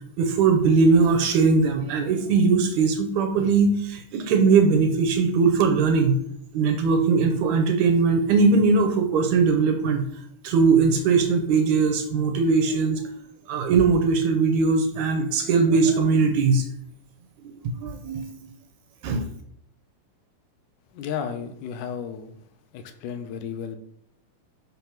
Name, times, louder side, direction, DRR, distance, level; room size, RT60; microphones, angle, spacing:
voice 1, 0.2-6.2 6.5-10.0 10.4-13.0 13.5-16.7 17.8-18.2 19.0-19.2, right 4 dB, 75° right, 5 dB, 1.9 m, -20 dB
voice 2, 20.9-22.3 22.7-23.8, left 7 dB, 80° left, 7 dB, 2.1 m, -33 dB
6.0 x 3.4 x 5.9 m, 0.69 s
omnidirectional pair, 3.7 m